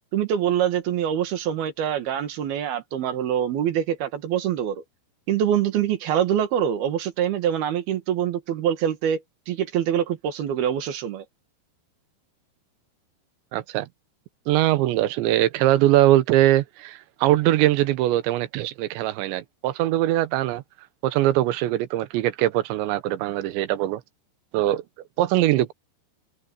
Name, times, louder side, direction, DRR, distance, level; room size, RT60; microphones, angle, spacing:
voice 1, 0.1-4.8 5.3-11.2, right 9 dB, 65° right, 3.4 m, -25 dB
voice 2, 13.5-13.9 14.5-20.6 21.0-24.0 24.5-24.8 25.2-25.7, right 14 dB, 80° right, 3.2 m, -21 dB
open air
omnidirectional pair, 5.3 m